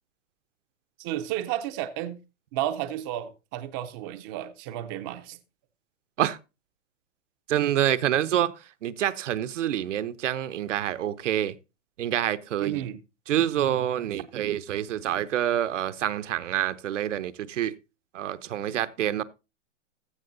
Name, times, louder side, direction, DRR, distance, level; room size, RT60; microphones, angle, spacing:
voice 1, 1.0-2.2 2.5-5.4 12.6-13.0, right 12 dB, 15° right, 0.5 m, -32 dB
voice 2, 7.5-8.5 8.8-11.6 12.0-12.9 13.3-17.7 18.1-19.2, right 11 dB, 85° right, 1.0 m, -27 dB
15.0 x 6.2 x 3.9 m
hypercardioid pair, 165°, 36 cm